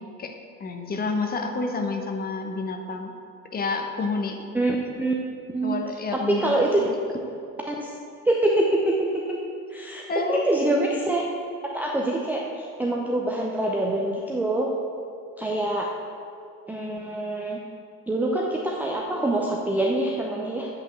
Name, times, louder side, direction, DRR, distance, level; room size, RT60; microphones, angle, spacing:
voice 1, 0.6-3.1 3.5-4.4 5.6-6.9 10.1-10.5, left 4 dB, 20° left, 4 dB, 1.0 m, -29 dB
voice 2, 4.5-5.1 5.5-5.7 6.1-6.8 7.7-7.9 8.3-9.4 9.7-11.2 11.6-14.7 15.4-15.9 16.7-17.6 18.1-20.7, right 1 dB, 5° right, -1 dB, 0.6 m, -25 dB
8.5 x 5.6 x 7.9 m, 2.5 s
figure-of-eight pair, 80°, 49 cm